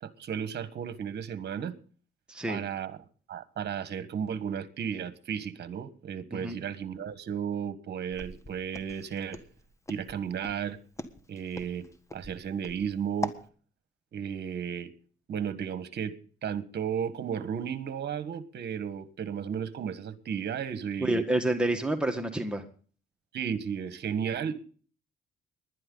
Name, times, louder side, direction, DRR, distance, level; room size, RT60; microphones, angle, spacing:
voice 1, 0.0-1.7 2.5-9.4 9.9-10.8 11.3-11.8 12.1-13.3 14.1-14.9 15.3-16.1 16.4-21.2 23.3-24.5, right 8 dB, 55° right, 1.5 m, -34 dB
voice 2, 2.3-2.6 6.3-6.6 21.0-22.6, right 1 dB, 5° right, 1.8 m, -28 dB
Walk footsteps, 8.1-13.4, left 1 dB, 15° left, 1.6 m, -41 dB
20.0 x 11.0 x 3.9 m
cardioid pair, 90°, 20 cm